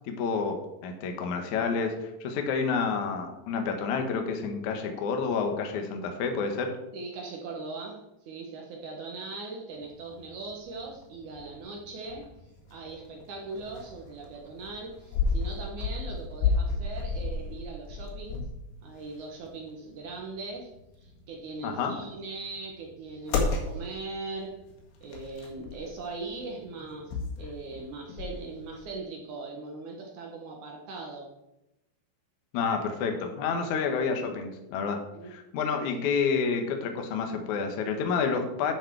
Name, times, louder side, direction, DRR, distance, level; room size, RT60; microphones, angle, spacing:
voice 1, 0.0-6.7 21.6-21.9 32.5-35.0 35.3-38.8, left 5 dB, 80° left, 4 dB, 1.7 m, -29 dB
voice 2, 6.9-12.3 12.7-18.5 18.8-20.7 21.0-24.6 25.0-31.3 35.1-35.3 35.7-35.8, right 3 dB, 70° right, 1 dB, 1.9 m, -40 dB
sound 1, 9.8-28.9, left 4 dB, 65° left, 3.8 m, -34 dB
11.0 x 7.8 x 4.7 m, 0.91 s
omnidirectional pair, 5.4 m